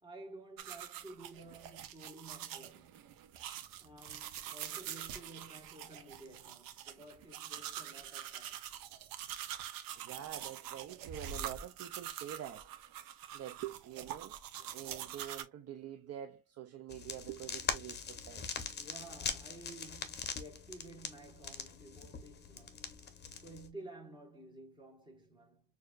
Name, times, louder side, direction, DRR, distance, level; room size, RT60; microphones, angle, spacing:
voice 1, 0.0-3.2 3.8-8.7 18.8-23.0 23.4-25.6, right 2 dB, 15° right, 1.6 m, -53 dB
sound 1, 0.6-15.4, right 10 dB, 80° right, 0.8 m, -45 dB
voice 2, 10.0-12.7 13.3-14.4 14.7-18.5, right 11 dB, 50° right, 0.5 m, -46 dB
sound 2, 16.9-23.7, left 6 dB, 30° left, 0.8 m, -42 dB
6.4 x 2.7 x 2.4 m
cardioid pair, 150°, 33 cm